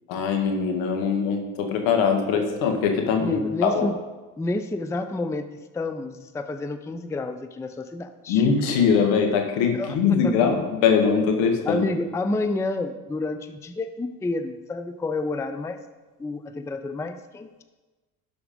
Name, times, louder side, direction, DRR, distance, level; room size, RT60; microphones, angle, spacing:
voice 1, 0.1-3.9 8.3-11.9, left 6 dB, 70° left, 4 dB, 1.7 m, -22 dB
voice 2, 3.1-3.9 4.4-5.5 5.7-8.5 9.7-10.3 11.6-15.8 16.2-17.6, left 2 dB, 5° left, 10 dB, 0.5 m, -29 dB
11.5 x 5.0 x 5.1 m, 1.2 s
hypercardioid pair, 70°, 45 cm